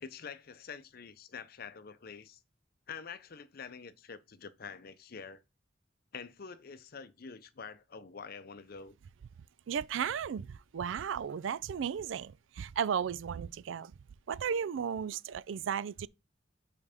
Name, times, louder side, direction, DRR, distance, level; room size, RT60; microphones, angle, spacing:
voice 1, 0.0-2.4 2.9-5.4 6.1-9.0, left 6 dB, 50° left, 0.6 m, -46 dB
voice 2, 9.7-13.9 14.3-16.1, right 7 dB, 85° right, 0.4 m, -35 dB
5.5 x 4.6 x 5.0 m
head